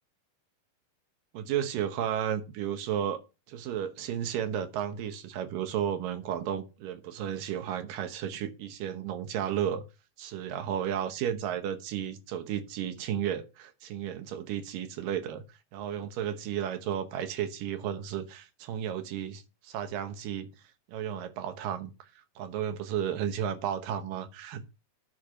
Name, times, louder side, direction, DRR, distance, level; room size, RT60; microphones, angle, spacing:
voice 1, 1.3-3.2 3.5-9.8 10.2-15.4 15.7-20.5 20.9-21.9 22.4-24.7, right 9 dB, 85° right, 2.7 m, -33 dB
10.0 x 4.7 x 5.7 m
omnidirectional pair, 3.8 m